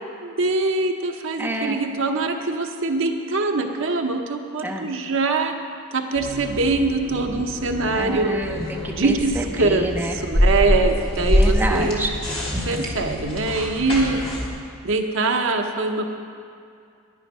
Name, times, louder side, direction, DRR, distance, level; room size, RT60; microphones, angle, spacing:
voice 1, 0.2-5.5 5.9-8.3 8.9-12.1 12.7-14.2 14.8-16.1, right 3 dB, 60° right, 4 dB, 0.9 m, -23 dB
voice 2, 1.4-1.8 4.6-4.9 7.9-10.2 11.2-12.1, right 1 dB, 10° right, 0 dB, 0.6 m, -28 dB
sound 1, 6.2-14.5, equal, 25° left, 2.0 m, -25 dB
11.0 x 10.5 x 5.4 m, 2.4 s
head